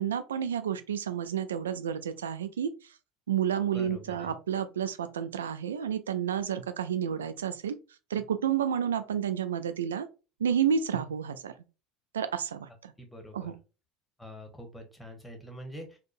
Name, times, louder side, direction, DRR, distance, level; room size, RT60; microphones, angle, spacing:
voice 1, 0.0-2.9 3.3-7.8 8.1-10.1 10.4-11.5 12.1-12.9 13.3-13.6, right 8 dB, 80° right, 0.3 m, -30 dB
voice 2, 3.7-4.3 13.0-13.5 14.2-16.0, equal, 5° left, 1.0 m, -45 dB
3.7 x 2.2 x 2.5 m
figure-of-eight pair, 70°, 0 cm